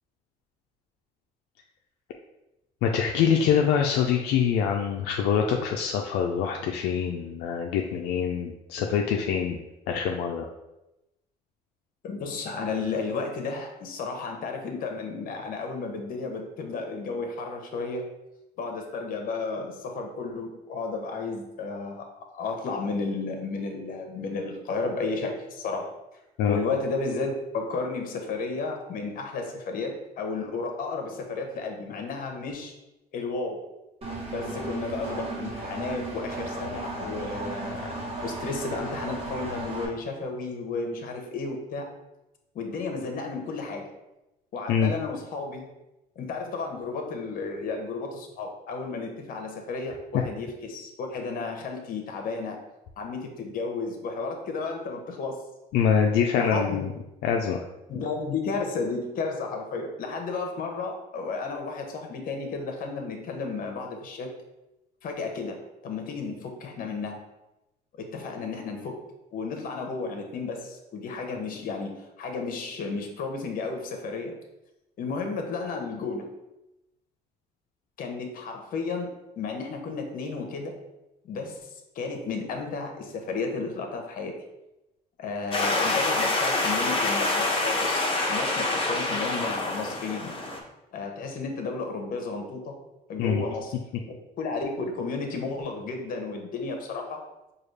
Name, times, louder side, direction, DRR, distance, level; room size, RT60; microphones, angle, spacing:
voice 1, 2.8-9.6 9.9-10.5 26.4-26.6 44.7-44.9 55.7-56.9 57.2-57.6 93.2-93.4, left 7 dB, 80° left, 1 dB, 0.4 m, -24 dB
voice 2, 12.0-18.0 18.6-25.9 26.5-32.7 33.1-33.6 34.3-37.9 38.2-41.9 42.5-43.8 44.5-45.7 46.2-52.6 53.0-55.5 56.3-56.8 57.9-64.3 65.0-67.2 68.0-69.0 69.3-74.3 75.0-76.3 78.0-80.7 81.2-84.3 85.2-90.3 90.9-92.7 93.1-93.7 94.4-97.2, left 4 dB, 55° left, 3 dB, 0.8 m, -33 dB
Engine, 34.0-39.9, right 2 dB, 35° right, 1.0 m, -35 dB
sound 1, 85.5-90.6, left 2 dB, 30° left, 0.8 m, -26 dB
4.8 x 2.3 x 3.2 m, 0.94 s
cardioid pair, 110°, 17 cm